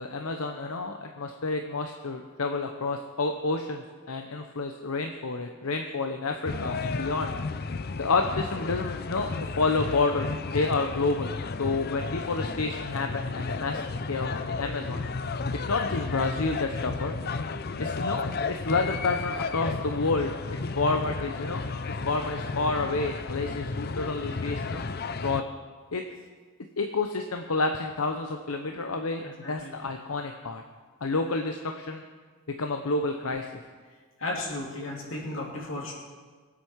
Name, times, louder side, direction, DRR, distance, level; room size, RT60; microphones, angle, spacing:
voice 1, 0.0-7.3 8.0-9.3 9.6-15.0 15.7-17.2 17.8-24.8 25.2-25.4 25.9-26.0 26.8-30.6 31.0-32.0 32.6-33.6, left 3 dB, 80° left, 4 dB, 0.9 m, -29 dB
sound 1, 6.5-25.4, left 4 dB, 45° left, 0.5 m, -33 dB
voice 2, 29.2-29.8 34.2-35.9, left 2 dB, 65° left, -2 dB, 3.2 m, -35 dB
24.0 x 8.3 x 4.7 m, 1.5 s
head